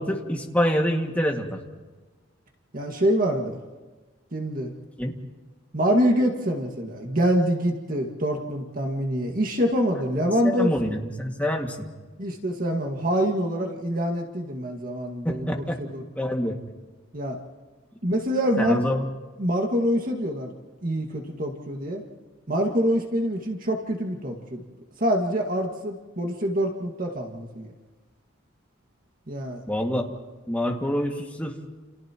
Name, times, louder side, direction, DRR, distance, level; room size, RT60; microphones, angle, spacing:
voice 1, 0.0-1.6 5.0-5.1 10.4-11.9 15.2-15.8 16.2-16.6 18.6-19.1 29.7-30.0 30.5-31.6, equal, 5° left, 0 dB, 2.0 m, -26 dB
voice 2, 2.7-3.6 4.3-4.7 5.7-10.7 12.2-16.0 17.1-17.4 18.0-18.8 19.4-20.5 20.8-22.0 22.5-24.6 25.0-27.7 29.3-29.6, equal, 45° right, 1 dB, 1.9 m, -25 dB
29.5 x 29.5 x 3.0 m, 1.3 s
head